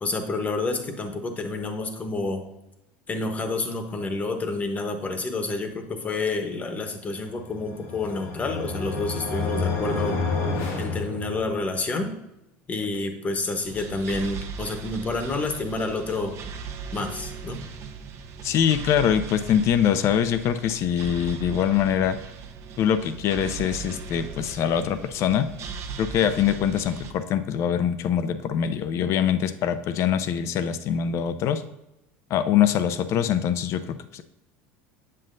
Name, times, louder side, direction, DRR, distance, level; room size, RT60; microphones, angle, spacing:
voice 1, 0.0-2.4 3.1-10.2 10.8-12.1 12.7-16.3 16.9-17.6, left 3 dB, 20° left, 6 dB, 1.0 m, -29 dB
sound 1, 7.4-11.8, left 3 dB, 80° left, 1.6 m, -29 dB
sound 2, 13.6-27.1, right 5 dB, 45° right, 0.8 m, -38 dB
voice 2, 18.4-22.2 22.8-25.5 26.0-31.6 32.3-34.2, left 9 dB, 45° left, 11 dB, 0.6 m, -23 dB
7.6 x 7.6 x 2.6 m, 0.90 s
supercardioid pair, 120°, 6 cm